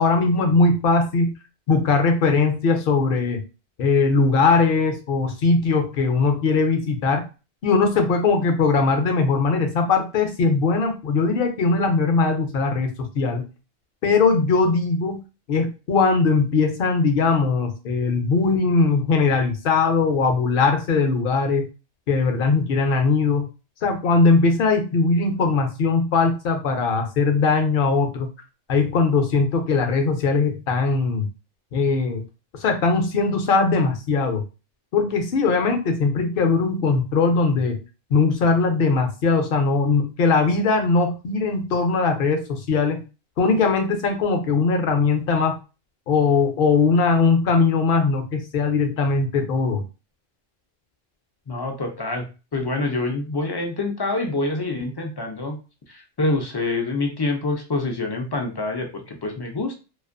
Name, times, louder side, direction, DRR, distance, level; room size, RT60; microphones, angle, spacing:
voice 1, 0.0-1.3 1.7-3.4 3.8-7.2 7.6-13.4 14.0-15.2 15.5-21.7 22.1-23.5 23.8-28.3 28.7-31.3 31.7-32.2 32.6-34.4 34.9-37.8 38.1-43.0 43.4-45.6 46.1-49.8, left 4 dB, 65° left, 5 dB, 0.8 m, -20 dB
voice 2, 51.5-52.3 52.5-55.6 55.9-59.8, left 2 dB, 40° left, 2 dB, 0.3 m, -26 dB
2.4 x 2.3 x 2.4 m, 0.31 s
omnidirectional pair, 1.0 m